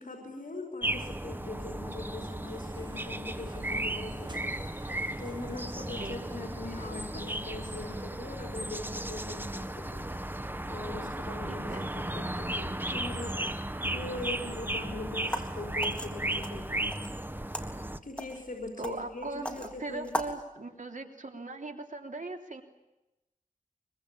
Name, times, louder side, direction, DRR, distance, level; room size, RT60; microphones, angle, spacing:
voice 1, 0.0-4.5 5.2-10.1 10.6-13.4 13.9-16.7 18.0-20.2, left 2 dB, 65° left, 1 dB, 5.3 m, -41 dB
sound 1, 0.8-18.0, right 1 dB, 15° right, 1.3 m, -35 dB
sound 2, 2.5-8.0, right 2 dB, 35° right, 2.2 m, -50 dB
voice 2, 11.4-11.9 18.8-22.6, right 3 dB, 65° right, 4 dB, 3.3 m, -39 dB
sound 3, 15.2-20.4, left 1 dB, 10° left, 3.5 m, -40 dB
24.5 x 24.0 x 8.7 m, 0.95 s
wide cardioid pair, 70°, 14 cm